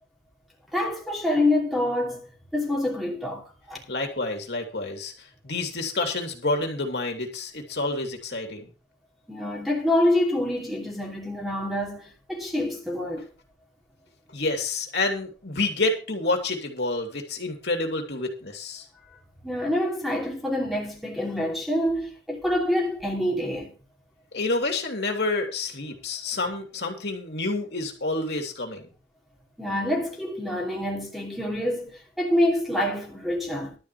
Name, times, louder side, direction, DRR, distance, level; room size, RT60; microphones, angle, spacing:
voice 1, 0.7-3.8 9.3-13.3 19.4-23.7 29.6-33.8, left 1 dB, ahead, 2.8 m, -26 dB
voice 2, 3.9-5.1 5.4-8.7 14.3-18.8 24.3-28.8, left 2 dB, 65° left, 2.9 m, -28 dB
12.5 x 4.9 x 8.5 m
head